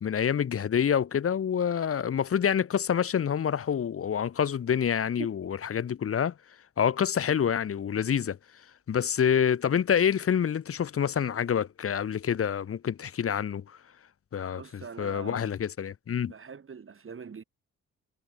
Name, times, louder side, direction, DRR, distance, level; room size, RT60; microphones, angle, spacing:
voice 1, 0.0-6.3 6.8-8.4 8.9-13.8 14.3-16.3, left 8 dB, 40° left, 0.7 m, -27 dB
voice 2, 14.6-15.5 16.2-17.4, right 6 dB, 35° right, 1.1 m, -43 dB
supercardioid pair, 45°, 36 cm